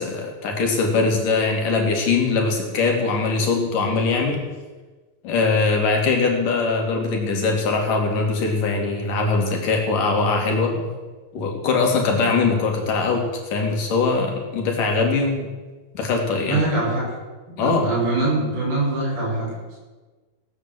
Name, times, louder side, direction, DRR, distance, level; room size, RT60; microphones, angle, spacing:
voice 1, 0.0-4.4 5.2-10.9 11.3-15.5 15.9-16.6 17.6-17.9, left 4 dB, 60° left, 1 dB, 4.0 m, -21 dB
voice 2, 16.5-17.1 17.6-19.8, right 2 dB, 85° right, -7 dB, 8.7 m, -23 dB
18.0 x 8.9 x 7.9 m, 1.3 s
omnidirectional pair, 4.2 m